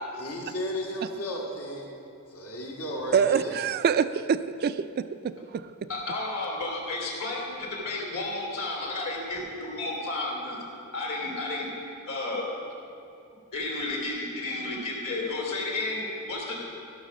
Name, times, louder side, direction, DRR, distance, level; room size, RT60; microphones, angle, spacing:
voice 1, 0.2-1.9 2.3-3.5, equal, 85° left, -2 dB, 2.2 m, -34 dB
voice 2, 3.1-5.9, right 7 dB, 45° right, 13 dB, 0.3 m, -26 dB
voice 3, 5.9-10.6 10.9-11.7 12.1-12.5 13.5-16.6, left 2 dB, 70° left, -2 dB, 3.1 m, -32 dB
15.0 x 6.1 x 6.3 m, 2.6 s
head